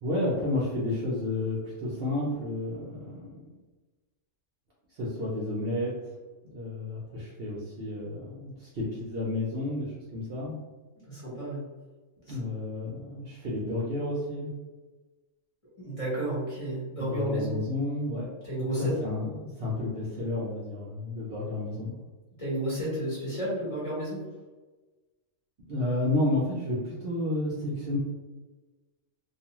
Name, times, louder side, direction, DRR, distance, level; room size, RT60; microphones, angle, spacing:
voice 1, 0.0-3.5 4.9-5.9 6.5-10.6 12.3-14.5 17.0-18.3 18.5-21.9 25.7-28.0, left 2 dB, 60° right, -5 dB, 0.7 m, -31 dB
voice 2, 11.1-11.6 12.3-12.4 15.8-17.6 18.4-18.9 22.4-24.2, right 1 dB, 30° left, -8 dB, 0.9 m, -32 dB
2.5 x 2.3 x 2.8 m, 1.2 s
omnidirectional pair, 1.4 m